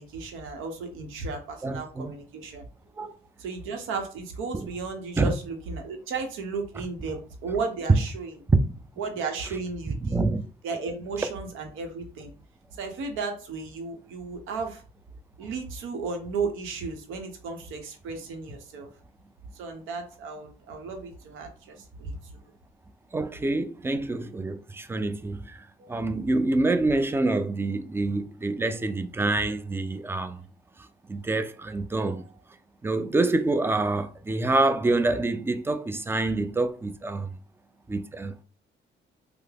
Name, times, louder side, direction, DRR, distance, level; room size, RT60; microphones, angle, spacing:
voice 1, 0.0-2.6 3.4-8.3 9.0-10.2 10.6-12.3 12.8-14.8 15.4-18.9 19.5-22.5 25.8-25.9 32.0-32.3, right 4 dB, 85° right, 0.8 m, -34 dB
voice 2, 1.6-2.1 3.0-3.1 4.5-4.7 5.2-5.3 8.5-8.8 10.0-10.4 23.1-30.5 30.8-32.2 32.8-37.4 37.9-38.4, right 2 dB, 10° right, 0.3 m, -26 dB
3.3 x 2.0 x 3.3 m
cardioid pair, 90°, 20 cm